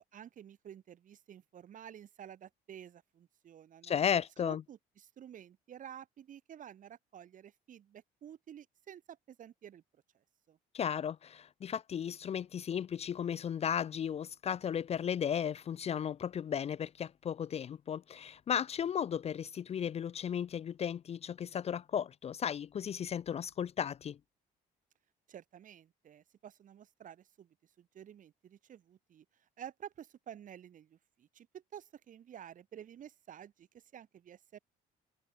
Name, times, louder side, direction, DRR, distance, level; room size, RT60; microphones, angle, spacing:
voice 1, 0.0-4.0 4.4-9.8 10.5-10.6 25.3-27.5 27.8-29.2 29.6-34.6, right 9 dB, 50° right, 2.4 m, -51 dB
voice 2, 3.8-4.6 10.7-24.2, left 8 dB, 40° left, 0.5 m, -35 dB
cardioid pair, 110°, 17 cm